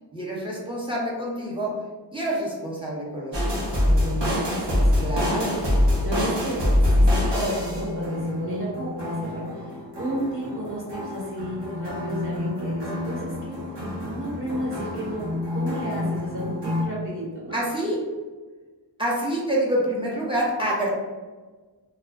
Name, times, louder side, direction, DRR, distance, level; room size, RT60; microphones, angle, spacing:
voice 1, 0.1-1.7 2.1-3.6 5.0-5.6 17.5-18.0 19.0-20.9, right 1 dB, 10° right, -4 dB, 0.7 m, -27 dB
sound 1, 3.3-16.8, left 1 dB, 70° right, 1.0 m, -25 dB
voice 2, 3.8-5.5 6.0-6.7 6.9-7.1 7.3-9.6 10.0-13.6 14.0-17.6, right 1 dB, 45° right, -8 dB, 1.2 m, -32 dB
2.4 x 2.0 x 3.4 m, 1.3 s
wide cardioid pair, 75°, 43 cm